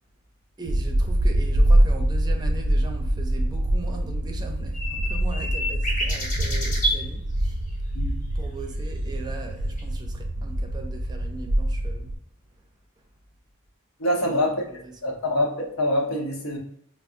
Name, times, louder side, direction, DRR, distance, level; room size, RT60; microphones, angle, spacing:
voice 1, 0.6-7.6 8.3-12.2 14.2-15.2, right 2 dB, 20° right, 0.5 m, -39 dB
sound 1, 0.6-12.2, right 1 dB, 85° right, 0.4 m, -24 dB
sound 2, 4.7-7.0 9.8-9.9, equal, 40° left, 1.1 m, -28 dB
voice 2, 14.0-14.5 15.0-16.6, left 1 dB, 90° left, 0.8 m, -25 dB
4.5 x 2.0 x 2.5 m
head